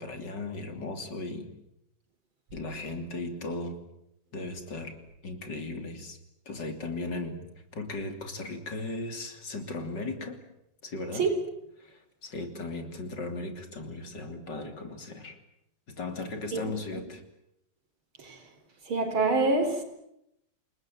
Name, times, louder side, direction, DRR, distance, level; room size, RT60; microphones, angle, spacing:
voice 1, 0.0-1.5 2.5-3.8 4.3-5.0 5.2-6.2 6.5-7.4 7.7-10.4 10.8-11.3 11.8-15.4 15.9-17.2, left 2 dB, 60° left, 3.6 m, -37 dB
voice 2, 18.9-19.8, right 3 dB, 85° right, 4.7 m, -26 dB
29.0 x 20.0 x 9.3 m
omnidirectional pair, 2.2 m